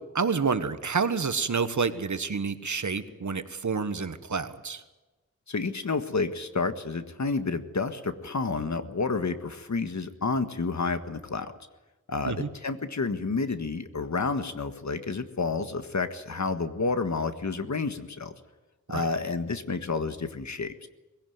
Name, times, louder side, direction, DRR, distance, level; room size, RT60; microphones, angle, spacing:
voice 1, 0.1-4.8 12.2-12.5 18.9-19.1, right 5 dB, 75° right, 11 dB, 1.4 m, -28 dB
voice 2, 5.5-11.5 12.1-18.3 18.9-20.9, left 4 dB, 65° left, 9 dB, 1.6 m, -30 dB
21.5 x 16.5 x 9.4 m, 1.1 s
wide cardioid pair, 75°, 30 cm